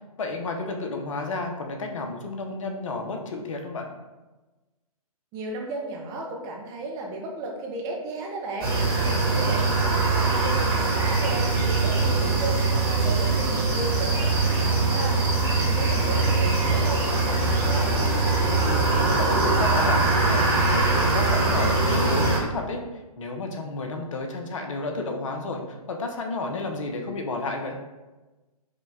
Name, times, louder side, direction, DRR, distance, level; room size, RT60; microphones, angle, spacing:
voice 1, 0.2-3.9 9.3-9.8 15.8-16.2 18.6-20.0 20.3-27.8, left 3 dB, 55° left, 3 dB, 0.7 m, -32 dB
voice 2, 5.3-15.2 15.5-17.9, right 2 dB, 15° right, 0 dB, 0.5 m, -34 dB
sound 1, 8.6-22.4, right 3 dB, 40° right, 1.2 m, -22 dB
5.1 x 2.2 x 3.4 m, 1.1 s
figure-of-eight pair, 135°, 20 cm